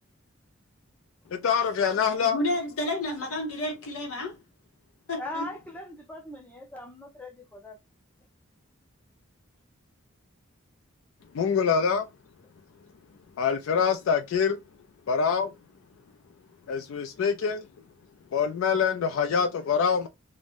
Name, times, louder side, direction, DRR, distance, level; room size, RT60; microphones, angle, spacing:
voice 1, 1.4-2.4 11.3-12.1 13.4-14.6 15.1-15.5 16.7-17.7 18.3-20.1, left 6 dB, 70° left, 0.3 m, -25 dB
voice 2, 2.2-4.3 5.1-5.5, left 1 dB, 85° left, 0.9 m, -30 dB
voice 3, 5.2-7.8, left 1 dB, 5° left, 0.5 m, -40 dB
2.5 x 2.1 x 3.2 m
head